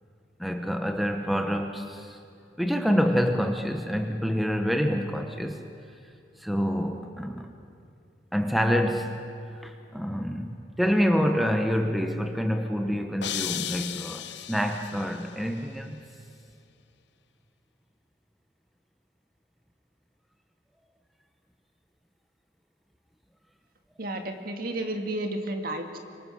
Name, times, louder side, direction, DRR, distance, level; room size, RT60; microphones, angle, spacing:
voice 1, 0.4-2.2 2.6-5.6 6.4-7.5 8.3-9.2 9.6-16.0, equal, ahead, 4 dB, 0.9 m, -27 dB
sound 1, 13.2-15.3, left 12 dB, 65° left, 0.7 m, -35 dB
voice 2, 24.0-26.0, right 1 dB, 50° right, 4 dB, 1.9 m, -32 dB
25.5 x 24.0 x 6.4 m, 2.5 s
head